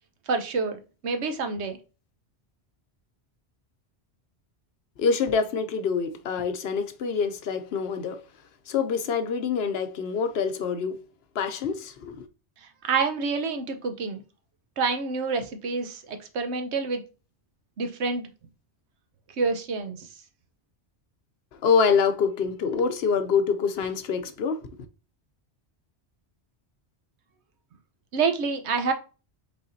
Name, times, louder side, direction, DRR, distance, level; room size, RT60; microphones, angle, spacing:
voice 1, 0.3-1.8 12.6-14.2 14.8-17.0 17.8-18.3 19.4-20.1 28.1-28.9, right 4 dB, 85° right, 1.1 m, -28 dB
voice 2, 5.0-8.2 8.7-11.0 11.3-12.3 21.5-24.7, left 5 dB, 70° left, 0.9 m, -26 dB
5.5 x 3.6 x 2.6 m
omnidirectional pair, 1.1 m